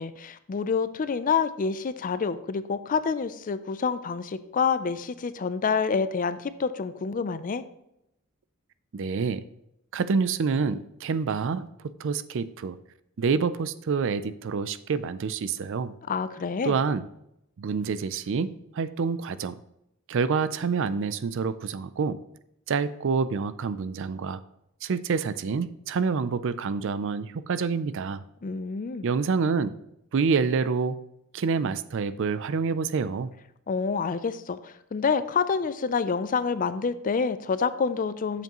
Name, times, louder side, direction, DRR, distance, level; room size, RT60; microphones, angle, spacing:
voice 1, 0.0-7.6 16.1-16.7 28.4-29.0 33.7-38.4, left 5 dB, 40° left, 13 dB, 0.4 m, -27 dB
voice 2, 8.9-9.4 9.9-12.8 13.2-15.9 16.6-17.1 17.6-19.6 20.1-22.2 22.7-24.4 24.8-28.2 29.0-29.7 30.1-31.0 31.3-33.3, right 5 dB, 60° right, 14 dB, 0.4 m, -27 dB
7.9 x 7.2 x 3.0 m, 0.81 s
head